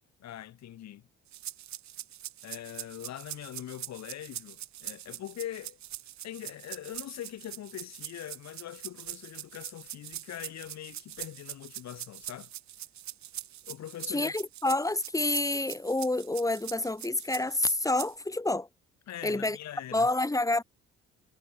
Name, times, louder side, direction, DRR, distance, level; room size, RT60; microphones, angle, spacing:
voice 1, 0.2-1.0 2.4-5.8 6.2-12.5 13.7-14.3 19.1-20.1, left 12 dB, 60° left, 2.6 m, -42 dB
sound 1, 1.3-18.1, right 13 dB, 65° right, 3.9 m, -43 dB
voice 2, 14.1-18.7 19.2-19.6 19.9-20.6, left 2 dB, 10° left, 2.3 m, -28 dB
hypercardioid pair, 60°, 30 cm